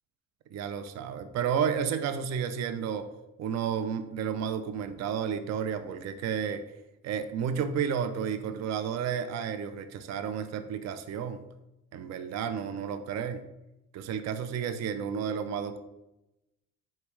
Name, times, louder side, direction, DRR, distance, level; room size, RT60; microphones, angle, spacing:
voice 1, 0.5-3.1 3.4-6.6 7.0-11.4 11.9-13.4 13.9-15.8, right 7 dB, 60° right, 10 dB, 0.4 m, -31 dB
4.3 x 3.4 x 3.0 m, 0.91 s
cardioid pair, 90°, 30 cm